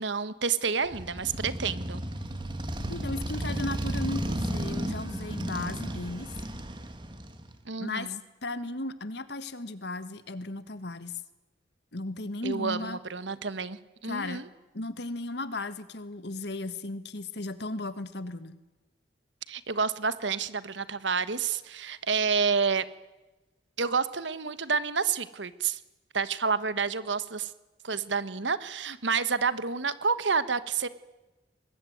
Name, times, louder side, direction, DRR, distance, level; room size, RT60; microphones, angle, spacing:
voice 1, 0.0-2.0 7.7-8.2 12.4-14.5 19.5-22.9 23.8-25.8 26.1-27.5 27.8-30.9, right 5 dB, 80° right, 14 dB, 1.4 m, -29 dB
Motorcycle, 0.9-7.6, right 1 dB, 25° right, 2.3 m, -34 dB
voice 2, 2.9-6.3 7.8-11.2 11.9-13.0 14.1-14.4 14.7-18.6, left 2 dB, 65° left, 13 dB, 1.6 m, -35 dB
24.0 x 21.0 x 9.4 m, 1.1 s
head